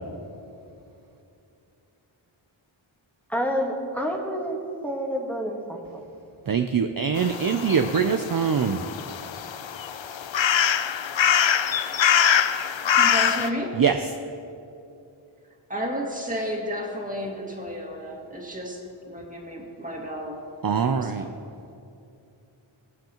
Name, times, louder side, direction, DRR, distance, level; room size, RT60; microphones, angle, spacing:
voice 1, 3.3-4.6 4.8-6.0, equal, 5° left, 0 dB, 1.5 m, -28 dB
voice 2, 6.5-8.8 13.8-14.0 20.6-21.2, right 6 dB, 45° right, 7 dB, 0.5 m, -23 dB
sound 1, 7.2-13.5, left 8 dB, 65° left, 0.6 m, -24 dB
voice 3, 12.9-13.8 15.7-18.8 19.1-20.4 21.0-21.3, equal, 15° right, -2 dB, 2.0 m, -32 dB
22.5 x 8.0 x 3.0 m, 2.7 s
wide cardioid pair, 55°, 49 cm